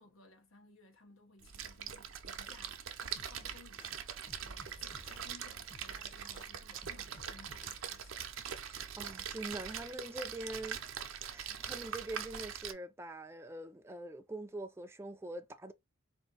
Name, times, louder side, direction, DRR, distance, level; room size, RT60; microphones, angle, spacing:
voice 1, 0.0-8.3, left 3 dB, 75° left, 1.2 m, -60 dB
Splash splatter, 1.4-12.7, right 8 dB, 75° right, 0.6 m, -43 dB
sound 1, 3.2-3.9 4.3-5.2 5.7-6.5 6.8-7.8, left 1 dB, 25° left, 0.9 m, -55 dB
voice 2, 8.7-11.0 11.3-15.7, right 2 dB, 10° right, 0.4 m, -44 dB
4.4 x 2.7 x 3.9 m
head